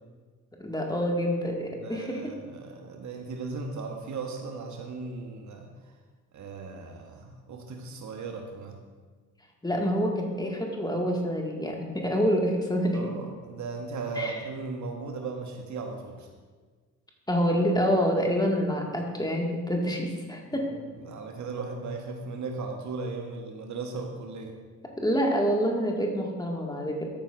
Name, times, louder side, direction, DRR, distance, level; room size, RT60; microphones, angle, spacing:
voice 1, 0.6-2.3 9.6-13.1 14.2-14.4 17.3-20.7 25.0-27.1, equal, 10° left, 0 dB, 2.0 m, -27 dB
voice 2, 1.8-5.9 6.3-8.8 12.9-16.3 20.5-20.7 21.0-24.5, right 4 dB, 45° right, 3 dB, 1.3 m, -37 dB
13.5 x 8.8 x 2.6 m, 1.5 s
figure-of-eight pair, 50°, 42 cm